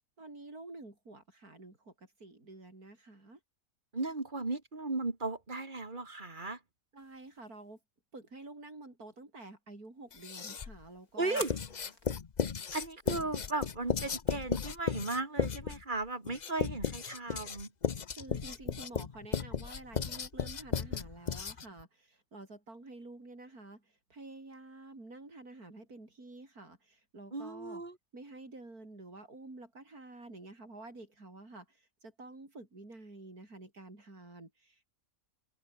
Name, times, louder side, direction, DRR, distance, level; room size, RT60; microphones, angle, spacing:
voice 1, 0.2-3.4 6.9-7.8 8.1-11.4 18.1-23.8 24.1-27.8 28.1-34.9, right 2 dB, 85° right, 6.3 m, -50 dB
voice 2, 3.9-6.6 11.2-11.5 12.7-17.7 27.3-28.0, right 3 dB, 35° right, 3.0 m, -36 dB
sound 1, 7.0-7.7 10.1-12.2, left 2 dB, 85° left, 7.1 m, -47 dB
Writing, 10.1-10.8 11.5-21.8, left 6 dB, 35° left, 0.8 m, -35 dB
omnidirectional pair, 1.5 m